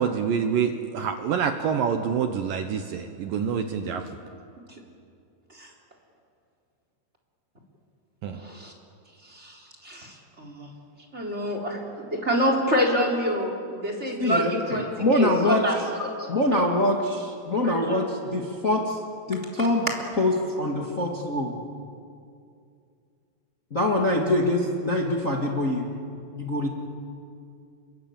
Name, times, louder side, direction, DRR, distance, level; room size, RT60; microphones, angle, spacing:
voice 1, 0.0-4.0 8.2-8.4, right 7 dB, 70° right, 7 dB, 2.2 m, -26 dB
voice 2, 8.3-8.7 9.3-10.7 11.1-14.9 15.1-16.1 17.6-18.0, equal, 15° right, 1 dB, 3.3 m, -27 dB
voice 3, 14.2-15.8 16.3-19.0 19.3-19.9 20.2-21.5 23.7-25.9 26.3-26.7, left 1 dB, 45° left, 0 dB, 0.9 m, -24 dB
28.0 x 22.5 x 8.7 m, 2.4 s
omnidirectional pair, 5.0 m